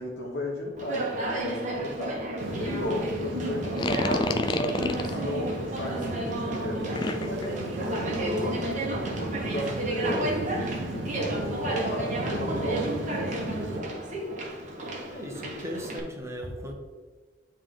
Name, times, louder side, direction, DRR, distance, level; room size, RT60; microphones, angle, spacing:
voice 1, 0.0-2.2 2.5-13.8, left 1 dB, 65° left, -4 dB, 1.1 m, -35 dB
Conversation, 0.8-16.0, right 1 dB, 40° right, 1.0 m, -33 dB
sound 1, 2.4-13.8, right 1 dB, 85° right, 1.0 m, -35 dB
sound 2, 3.7-5.2 7.0-7.5, left 2 dB, 25° left, 0.3 m, -28 dB
voice 2, 15.0-16.7, equal, 15° right, 1 dB, 1.0 m, -37 dB
9.5 x 3.3 x 3.8 m, 1.4 s
head